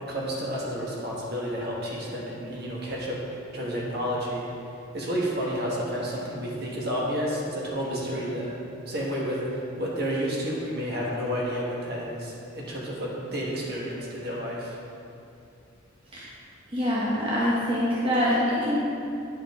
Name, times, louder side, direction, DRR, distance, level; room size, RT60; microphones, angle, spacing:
voice 1, 0.1-4.5 4.9-14.8, equal, 50° right, -4 dB, 1.3 m, -31 dB
voice 2, 16.7-18.8, equal, 25° right, -8 dB, 0.9 m, -25 dB
9.5 x 5.0 x 3.5 m, 2.6 s
head